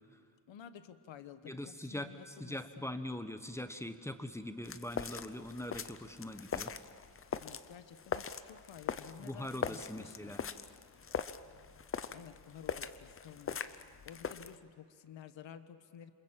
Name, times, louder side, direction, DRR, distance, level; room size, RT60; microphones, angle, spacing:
voice 1, 0.5-2.9 7.4-10.3 12.1-13.6 14.0-16.1, left 8 dB, 85° left, 11 dB, 1.3 m, -52 dB
voice 2, 1.4-6.7 9.2-10.4, left 1 dB, 5° left, 9 dB, 1.0 m, -42 dB
sound 1, 4.6-14.6, left 6 dB, 30° left, 0.6 m, -42 dB
27.5 x 27.0 x 7.4 m, 2.2 s
wide cardioid pair, 165°, 44 cm